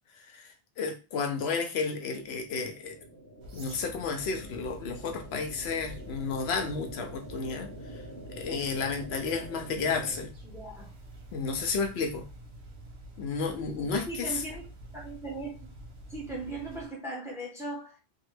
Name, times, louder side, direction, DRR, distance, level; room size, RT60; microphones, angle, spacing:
voice 1, 0.2-3.0 3.5-7.7 8.3-10.3 11.3-12.3 13.2-14.3, left 5 dB, 75° left, 0.8 m, -32 dB
sound 1, 1.9-10.3, right 1 dB, 60° right, 1.5 m, -46 dB
sound 2, 3.4-16.9, right 1 dB, 75° right, 1.0 m, -47 dB
voice 2, 10.4-10.9 14.1-14.7 14.9-15.6 16.1-18.0, right 2 dB, 5° right, 0.8 m, -38 dB
3.0 x 2.1 x 3.2 m
omnidirectional pair, 1.1 m